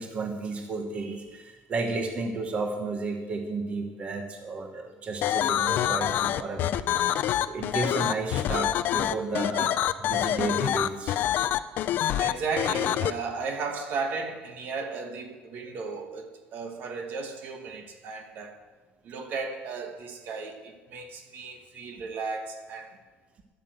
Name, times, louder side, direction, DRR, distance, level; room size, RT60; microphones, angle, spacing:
voice 1, 0.0-6.8 7.5-11.3, right 3 dB, 30° right, 1.4 m, -32 dB
sound 1, 5.2-13.1, left 12 dB, 55° left, 0.5 m, -26 dB
voice 2, 12.2-18.6 19.0-23.0, right 4 dB, 50° right, 1.5 m, -35 dB
10.5 x 8.7 x 7.7 m
cardioid pair, 155°, 4 cm